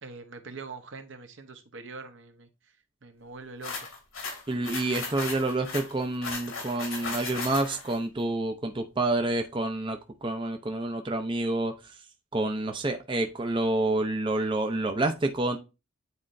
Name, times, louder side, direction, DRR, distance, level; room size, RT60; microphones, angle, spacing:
voice 1, 0.0-2.5 3.0-3.7, right 4 dB, 65° right, 0.9 m, -43 dB
sound 1, 3.6-8.0, left 4 dB, 90° left, 3.1 m, -36 dB
voice 2, 4.5-11.7 12.3-15.6, right 2 dB, 25° right, 0.6 m, -28 dB
9.6 x 4.3 x 2.6 m
head